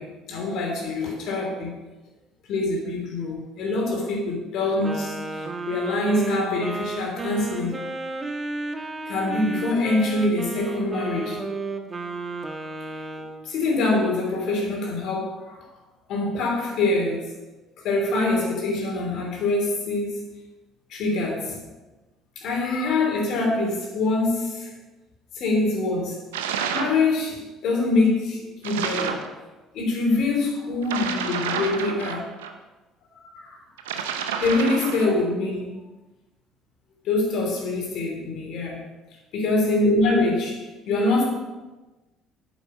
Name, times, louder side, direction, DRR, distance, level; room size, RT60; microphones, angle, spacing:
voice 1, 0.0-1.8 2.5-7.8 9.0-11.4 13.4-15.7 16.1-17.4 17.8-20.2 20.9-21.6 22.4-24.7 25.3-26.2 26.7-29.3 29.7-32.3 33.3-33.6 34.4-35.8 37.0-38.8 39.3-41.2, left 2 dB, 60° left, -1 dB, 3.0 m, -24 dB
Wind instrument woodwind instrument, 4.8-13.4, right 3 dB, 25° right, 1.2 m, -33 dB
sound 1, 26.3-27.0 28.6-29.3 30.8-32.5 33.8-35.2, right 7 dB, 80° right, 0.6 m, -29 dB
8.8 x 7.2 x 5.3 m, 1.1 s
hypercardioid pair, 55°, 0 cm